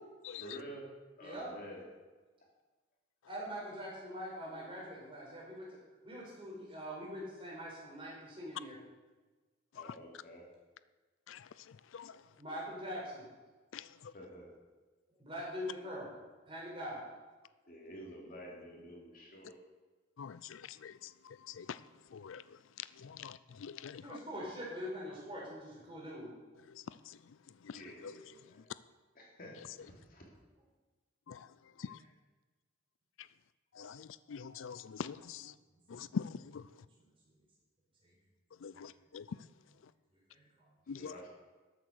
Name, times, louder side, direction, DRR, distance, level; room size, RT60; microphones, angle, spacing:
voice 1, 0.4-0.9 1.2-1.9 9.7-10.5 14.1-14.5 17.7-19.5 27.7-28.7 29.1-30.2 40.9-41.3, equal, 45° left, -1 dB, 2.9 m, -49 dB
voice 2, 3.3-5.8 6.0-8.8 12.4-13.2 15.2-16.1 16.5-17.0 24.0-26.3 32.0-32.1 36.0-36.2 37.0-37.1 38.7-38.9 40.3-40.7, equal, 25° right, -4 dB, 4.7 m, -43 dB
voice 3, 20.2-20.9 21.6-21.7 22.1-22.4 23.0-24.0 27.7-27.8 31.3-31.4 31.8-32.0 33.8-35.5 35.9-36.6 38.6-39.2 40.9-41.1, left 6 dB, 75° left, 16 dB, 0.4 m, -43 dB
13.0 x 8.4 x 6.5 m, 1.3 s
head